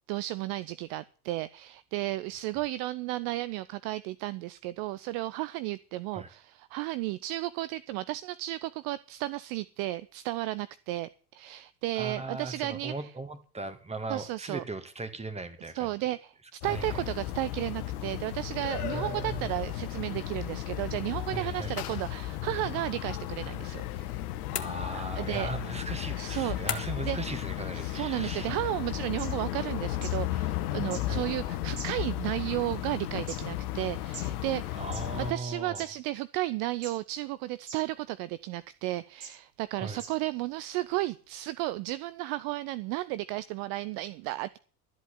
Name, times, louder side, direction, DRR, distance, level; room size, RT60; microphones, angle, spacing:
voice 1, 0.1-13.1 14.1-14.6 15.7-24.3 24.9-25.5 26.1-27.2 27.7-34.8 35.2-44.6, right 17 dB, 45° right, 0.6 m, -33 dB
voice 2, 11.9-15.9 16.6-17.1 18.8-19.5 21.3-22.0 24.5-28.5 31.1-31.3 34.7-35.9 39.8-40.0, right 3 dB, 15° right, 2.1 m, -38 dB
sound 1, 16.6-35.3, left 14 dB, 65° left, 1.1 m, -34 dB
sound 2, 24.5-25.3 26.7-27.2, left 8 dB, 80° left, 1.4 m, -36 dB
sound 3, 29.2-29.3 30.0-30.1 30.9-31.0 31.8-32.2 32.9-33.4 34.1-34.2 34.8-35.0 35.7-35.8 36.8-37.1 37.7-37.8 38.5-38.6 39.2-39.3 40.0-40.1 40.9-41.0, right 4 dB, 70° right, 7.3 m, -42 dB
13.0 x 8.2 x 7.2 m
figure-of-eight pair, 75°, 47 cm